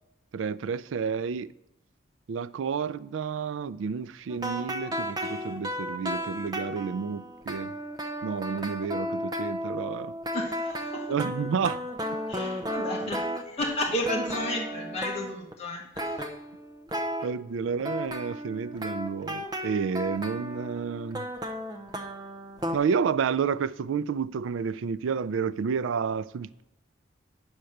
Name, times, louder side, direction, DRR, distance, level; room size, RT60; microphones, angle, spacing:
voice 1, 0.3-1.5 2.3-7.7 8.2-10.1 11.1-11.8 17.2-21.3 22.7-26.6, right 6 dB, 85° right, 0.4 m, -30 dB
sound 1, 4.3-13.8 14.0-15.5 16.0-17.3 17.8-22.8, equal, 20° right, 0.7 m, -34 dB
voice 2, 10.3-11.1 12.3-16.2, left 1 dB, 35° left, 1.4 m, -33 dB
9.5 x 4.4 x 6.5 m
head